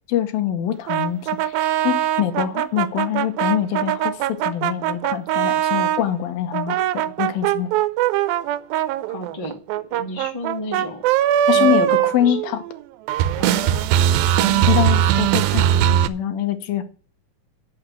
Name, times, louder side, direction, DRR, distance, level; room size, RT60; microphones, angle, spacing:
voice 1, 0.1-7.7 11.5-12.6 14.7-16.8, left 11 dB, 80° left, 9 dB, 2.7 m, -24 dB
sound 1, 0.9-6.0 6.5-12.8 13.1-16.1, right 11 dB, 85° right, 2.4 m, -20 dB
voice 2, 9.1-11.1 11.5-12.4 13.4-13.9 14.4-15.4 15.7-15.8, left 1 dB, 15° left, 0 dB, 1.2 m, -33 dB
7.9 x 6.3 x 7.6 m, 0.39 s
omnidirectional pair, 4.1 m